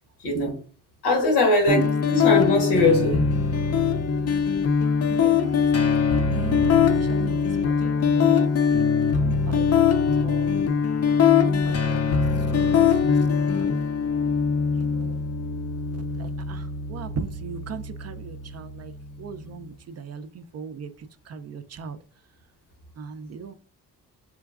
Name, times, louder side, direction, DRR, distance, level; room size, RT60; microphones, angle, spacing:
voice 1, 0.2-0.5 1.0-3.3, left 2 dB, 80° left, 1.1 m, -21 dB
sound 1, 1.7-19.6, left 6 dB, 40° left, 0.5 m, -22 dB
voice 2, 5.1-7.5 7.8-9.8 10.2-10.6 11.4-12.2 12.5-12.7 13.5-13.7 14.9-15.1 16.2-16.6 16.9-18.9 19.2-20.9 21.3-22.0 23.0-23.5, right 6 dB, 40° right, 0.4 m, -37 dB
3.7 x 2.3 x 2.4 m
supercardioid pair, 50°, 39 cm